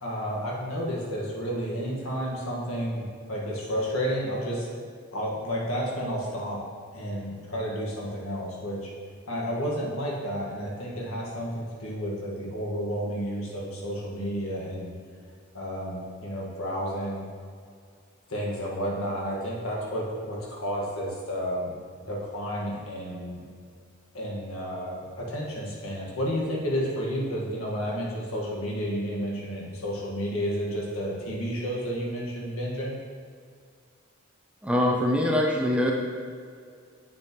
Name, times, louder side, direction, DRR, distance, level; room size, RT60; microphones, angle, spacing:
voice 1, 0.0-4.7 5.1-6.6 6.9-8.9 9.3-15.0 15.5-17.3 18.3-21.7 22.0-23.4 24.1-33.0, equal, 80° left, -3 dB, 1.6 m, -31 dB
voice 2, 34.6-35.9, left 1 dB, 5° right, -1 dB, 0.6 m, -23 dB
8.3 x 6.3 x 3.0 m, 2.1 s
head